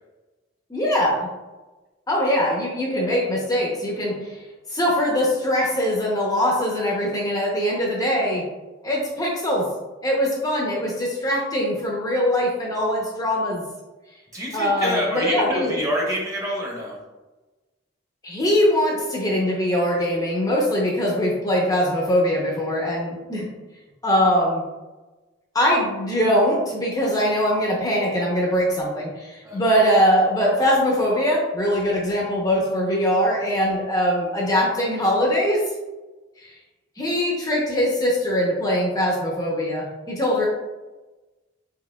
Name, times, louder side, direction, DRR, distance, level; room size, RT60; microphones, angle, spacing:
voice 1, 0.7-1.3 2.1-4.4 4.7-8.4 8.8-9.7 10.0-13.6 14.5-15.7 18.2-23.5 24.0-24.6 25.5-35.6 36.4-36.5 37.0-40.5, equal, 20° left, -2 dB, 0.7 m, -22 dB
voice 2, 14.3-17.0 29.4-29.6, equal, 20° right, -2 dB, 1.0 m, -26 dB
4.8 x 4.3 x 2.2 m, 1.2 s
head